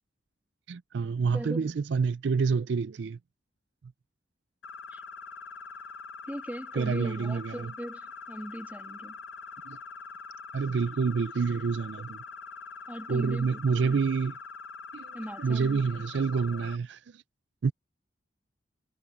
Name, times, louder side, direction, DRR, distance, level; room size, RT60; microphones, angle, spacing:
voice 1, 0.7-3.2 6.7-7.7 9.7-9.8 10.5-12.2 13.1-14.4 14.9-17.2 17.6-17.7, right 5 dB, 65° right, 0.4 m, -28 dB
voice 2, 1.3-1.7 4.9-5.0 6.3-9.2 12.9-14.0 15.1-16.0, equal, 10° right, 2.7 m, -39 dB
sound 1, 4.6-16.8, left 4 dB, 75° left, 0.9 m, -44 dB
head